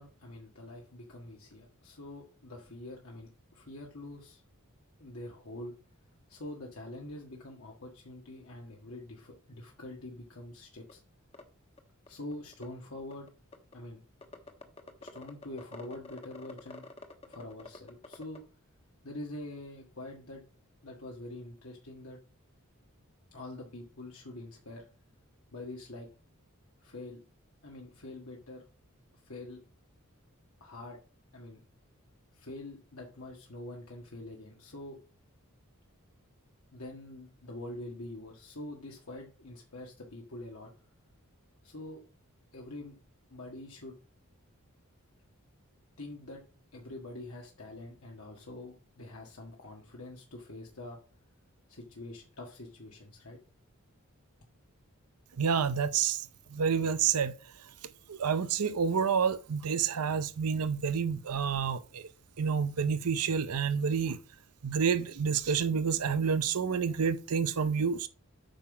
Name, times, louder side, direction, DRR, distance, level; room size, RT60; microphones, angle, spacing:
voice 1, 0.0-4.4 5.0-5.7 6.3-11.0 12.1-13.3 13.7-14.0 15.0-16.8 17.3-18.4 19.0-20.4 20.8-22.2 23.3-24.8 25.5-26.1 26.8-27.2 27.6-28.6 29.2-29.6 30.6-31.0 31.3-31.6 32.3-35.0 36.7-40.7 41.6-42.0 42.5-43.0 43.3-43.9 46.0-46.4 46.7-51.0 51.7-53.4, left 2 dB, 70° left, 1.7 m, -45 dB
sound 1, 10.9-11.0 11.3-11.4 11.8-11.9 12.1-12.7 13.1-13.7 14.2-18.4, left 3 dB, 25° left, 1.1 m, -47 dB
voice 2, 55.4-57.4 58.1-62.1 62.4-64.2 64.6-68.1, right 6 dB, 85° right, 0.6 m, -29 dB
8.7 x 5.8 x 4.9 m
head